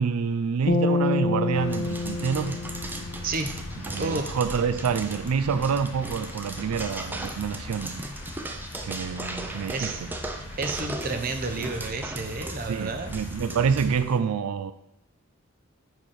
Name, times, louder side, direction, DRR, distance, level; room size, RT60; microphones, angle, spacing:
voice 1, 0.0-2.6 3.9-8.0 8.8-10.1 12.7-14.7, right 6 dB, 85° right, 0.4 m, -27 dB
sound 1, 0.7-4.0, left 3 dB, 40° left, 0.6 m, -28 dB
sound 2, 1.5-14.0, left 1 dB, 60° left, 1.0 m, -40 dB
sound 3, 1.7-14.2, right 2 dB, 10° right, 0.4 m, -38 dB
voice 2, 3.2-3.5 4.0-4.4 9.7-10.0 10.6-13.1, right 3 dB, 40° right, 0.7 m, -31 dB
4.8 x 4.6 x 5.7 m
head